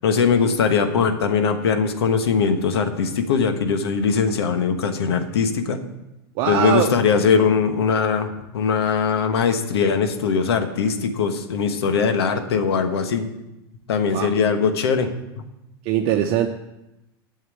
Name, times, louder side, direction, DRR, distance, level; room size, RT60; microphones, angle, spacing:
voice 1, 0.0-5.8 6.5-13.3 13.9-15.4, left 5 dB, 80° left, 8 dB, 1.3 m, -21 dB
voice 2, 6.4-6.9 14.1-14.3 15.8-16.5, right 10 dB, 50° right, 3 dB, 0.9 m, -21 dB
9.5 x 7.2 x 8.4 m, 0.94 s
hypercardioid pair, 100°, 13 cm